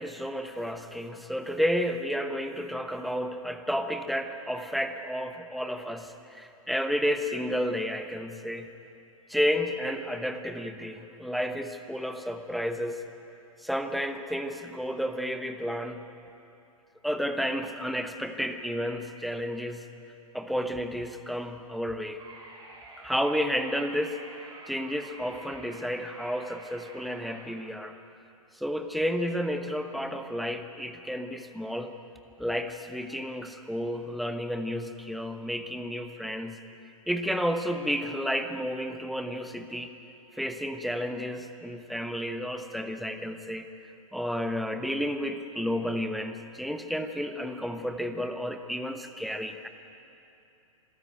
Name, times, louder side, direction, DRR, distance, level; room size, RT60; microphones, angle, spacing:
voice 1, 0.0-8.7 9.3-13.0 13.6-16.0 17.0-19.8 20.3-22.2 23.0-24.2 24.7-27.9 28.5-31.9 32.4-36.6 37.1-39.9 40.4-43.7 44.1-49.7, equal, ahead, 7 dB, 1.0 m, -31 dB
sound 1, 22.2-27.4, right 2 dB, 20° right, 5.8 m, -48 dB
26.0 x 13.5 x 9.3 m, 2.8 s
figure-of-eight pair, 105°, 18 cm